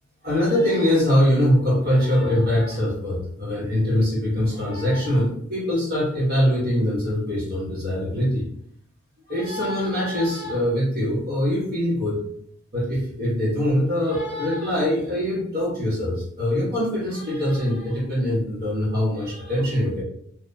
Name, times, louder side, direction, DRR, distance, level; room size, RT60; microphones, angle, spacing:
voice 1, 0.2-8.5 9.3-12.2 12.7-20.0, left 1 dB, 50° right, -5 dB, 1.2 m, -23 dB
3.6 x 2.4 x 2.7 m, 0.65 s
head